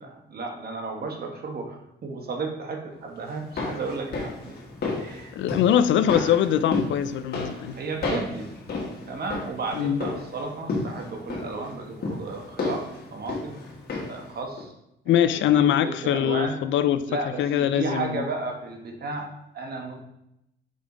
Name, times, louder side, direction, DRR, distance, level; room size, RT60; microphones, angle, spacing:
voice 1, 0.0-4.6 5.0-5.3 6.1-6.4 7.7-8.5 9.1-13.6 14.1-14.7 15.1-16.6 17.1-20.0, right 3 dB, 50° right, 1.2 m, -34 dB
sound 1, 3.3-14.3 14.6-14.7, left 3 dB, 50° left, 1.6 m, -33 dB
voice 2, 5.4-7.8 9.7-10.0 15.1-17.0 17.4-18.2, left 10 dB, 70° left, 0.4 m, -22 dB
5.2 x 5.0 x 3.9 m
cardioid pair, 90°, 20 cm